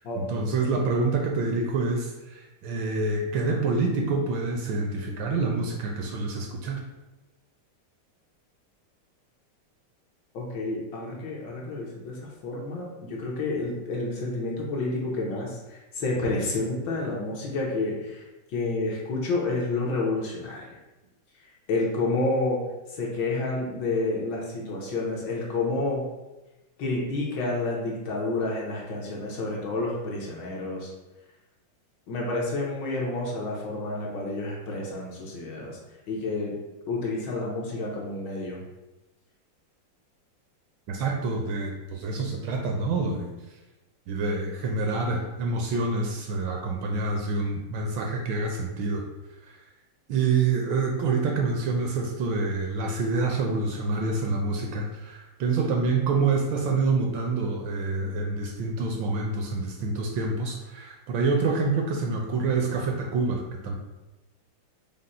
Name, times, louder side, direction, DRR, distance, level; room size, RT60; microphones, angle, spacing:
voice 1, 0.2-6.8 40.9-43.3 44.1-49.1 50.1-63.7, right 3 dB, 75° right, 1 dB, 1.2 m, -27 dB
voice 2, 10.3-20.7 21.7-22.6 22.9-26.1 26.8-30.9 32.1-35.8 36.1-36.5 36.9-38.6, left 2 dB, 70° left, -2 dB, 1.3 m, -29 dB
5.1 x 2.0 x 4.1 m, 1.1 s
omnidirectional pair, 2.4 m